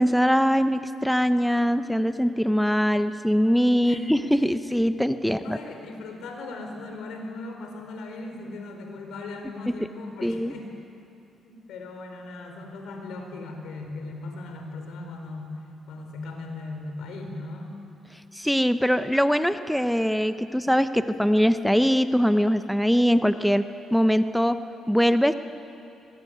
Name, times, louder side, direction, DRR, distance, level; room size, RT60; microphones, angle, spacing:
voice 1, 0.0-5.6 10.2-10.5 18.3-24.6 24.9-25.3, equal, ahead, 10 dB, 0.8 m, -22 dB
voice 2, 5.2-10.7 11.4-15.5 15.9-17.8, left 2 dB, 80° left, 4 dB, 4.7 m, -38 dB
23.0 x 22.0 x 9.4 m, 2.8 s
cardioid pair, 90°, 0 cm